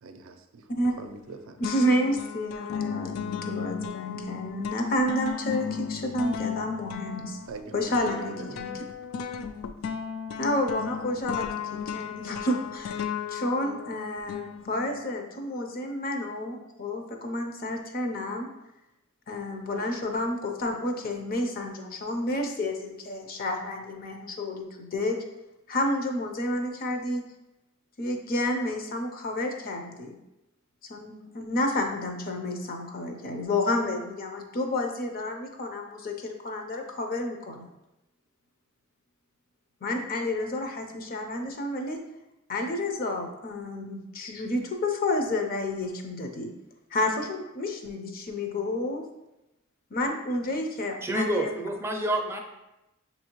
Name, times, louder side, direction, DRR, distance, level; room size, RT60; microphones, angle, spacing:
voice 1, 0.0-0.7 1.0-1.6 7.5-8.9, right 3 dB, 80° right, 6 dB, 0.4 m, -42 dB
sound 1, 0.8-1.3 1.6-15.0, left 7 dB, 85° left, 0.3 m, -35 dB
voice 2, 1.6-7.4 7.7-8.3 8.6-8.7 10.4-18.5 19.3-25.2 25.7-27.2 28.0-30.1 30.9-37.7 39.8-42.0 42.5-46.5 46.9-49.0 49.9-51.5, left 1 dB, 45° left, 3 dB, 0.6 m, -30 dB
voice 3, 51.0-52.4, right 1 dB, 10° right, 2 dB, 0.4 m, -28 dB
6.5 x 2.7 x 2.9 m, 0.94 s
head